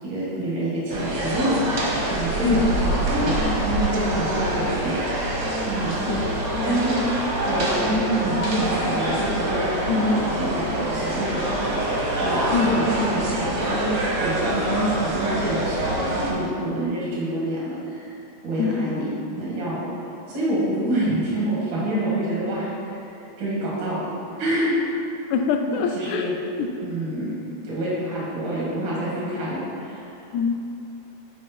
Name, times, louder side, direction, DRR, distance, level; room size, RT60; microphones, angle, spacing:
voice 1, 0.0-1.6 2.1-5.0 5.7-6.0 6.6-7.0 7.5-13.9 14.2-18.1 18.4-19.1 19.4-19.8 20.3-23.1 23.4-24.1 24.4-24.7 25.7-26.3 26.8-30.2, right 1 dB, 85° right, -7 dB, 3.1 m, -27 dB
sound 1, 0.9-16.3, right 1 dB, 60° right, 1.0 m, -25 dB
voice 2, 6.1-7.1 9.9-10.2 12.5-12.8 18.6-18.9 25.3-26.3 26.6-26.7 30.3-30.5, left 6 dB, 80° left, 5 dB, 1.9 m, -24 dB
9.8 x 4.2 x 4.3 m, 2.8 s
omnidirectional pair, 3.3 m